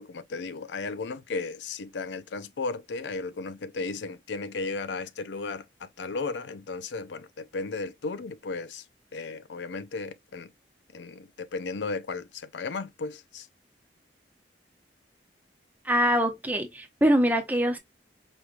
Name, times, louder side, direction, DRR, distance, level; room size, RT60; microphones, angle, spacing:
voice 1, 0.0-8.8 9.1-10.5 10.9-13.5, left 3 dB, 80° left, 0.5 m, -35 dB
voice 2, 15.8-17.8, equal, 10° right, 0.8 m, -23 dB
4.7 x 3.2 x 2.4 m
head